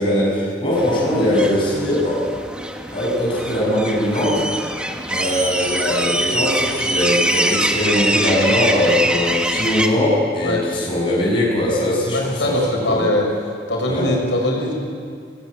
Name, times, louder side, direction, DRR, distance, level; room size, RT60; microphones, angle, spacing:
voice 1, 0.0-2.2 2.9-4.4 5.1-12.6 12.9-13.1 13.9-14.1, left 1 dB, 30° left, -5 dB, 7.4 m, -20 dB
sound 1, 0.7-9.9, right 1 dB, 5° right, 1.3 m, -23 dB
voice 2, 12.1-13.3 13.7-14.7, left 1 dB, 90° left, 0 dB, 6.3 m, -21 dB
24.5 x 18.5 x 9.3 m, 2.1 s
head